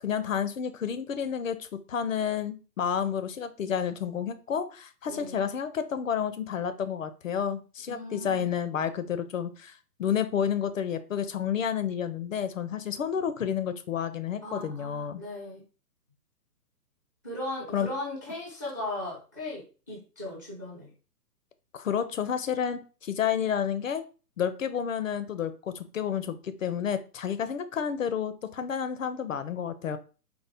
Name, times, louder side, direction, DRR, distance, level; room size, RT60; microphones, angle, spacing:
voice 1, 0.0-15.2 17.7-17.9 21.8-24.0 24.4-30.0, left 8 dB, 55° left, 11 dB, 0.5 m, -30 dB
voice 2, 7.9-8.5 14.4-15.6 17.2-20.9, left 1 dB, 15° right, -3 dB, 0.5 m, -37 dB
4.3 x 2.0 x 3.4 m, 0.35 s
hypercardioid pair, 145°, 49 cm